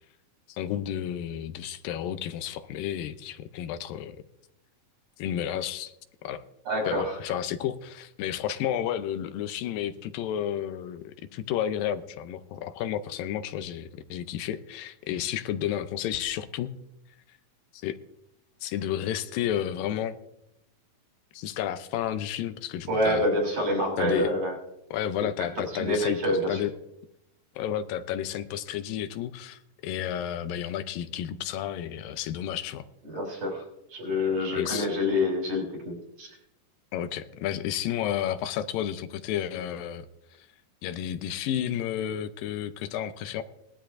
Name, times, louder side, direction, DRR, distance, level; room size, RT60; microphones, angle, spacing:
voice 1, 0.5-4.2 5.2-5.9 6.2-6.4 6.9-16.7 17.7-18.0 18.6-20.2 21.3-23.3 24.0-24.3 24.9-26.7 27.6-32.9 34.5-34.9 36.9-40.1 40.8-43.4, left 10 dB, 80° left, 10 dB, 2.4 m, -31 dB
voice 2, 6.6-7.2 22.9-24.5 25.4-26.6 33.1-33.6 33.9-36.3, left 1 dB, 55° right, -1 dB, 6.4 m, -27 dB
20.0 x 12.5 x 2.6 m, 0.83 s
omnidirectional pair, 4.0 m